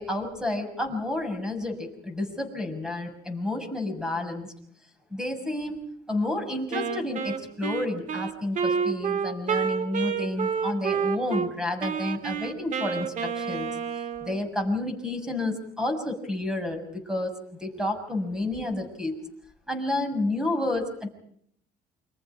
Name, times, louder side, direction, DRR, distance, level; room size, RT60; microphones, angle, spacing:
voice 1, 0.0-4.5 5.1-5.8 6.1-13.7 14.2-17.3 17.6-19.1 19.7-21.1, left 2 dB, 5° right, 6 dB, 6.6 m, -30 dB
Wind instrument woodwind instrument, 6.7-11.5 11.8-14.4, right 6 dB, 50° right, 2.1 m, -29 dB
29.0 x 25.0 x 5.0 m, 0.67 s
cardioid pair, 110°, 17 cm